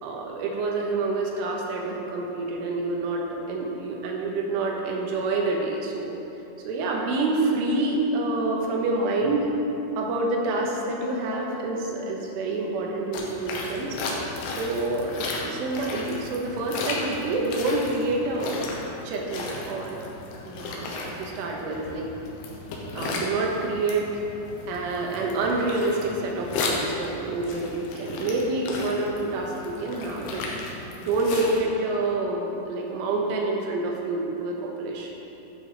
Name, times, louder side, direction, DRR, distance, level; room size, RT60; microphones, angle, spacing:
voice 1, 0.0-6.1 6.7-9.5 10.0-14.0 14.5-18.6 19.1-20.0 20.4-22.1 23.0-24.1 24.7-30.4 31.0-35.1, right 2 dB, 85° right, -1 dB, 3.8 m, -27 dB
sound 1, 13.1-31.6, left 3 dB, 90° left, 3.7 m, -35 dB
12.5 x 9.2 x 4.2 m, 3.0 s
omnidirectional pair, 5.5 m